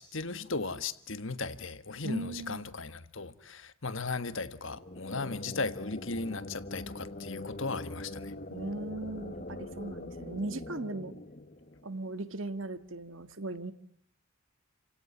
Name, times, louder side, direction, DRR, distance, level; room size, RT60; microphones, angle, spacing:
voice 1, 0.0-8.3, left 3 dB, 60° left, 1.5 m, -37 dB
voice 2, 2.0-2.6 8.5-11.1 11.8-13.7, right 2 dB, 60° right, 1.7 m, -38 dB
sound 1, 4.6-12.2, left 1 dB, 40° left, 1.5 m, -43 dB
30.0 x 17.0 x 9.7 m
head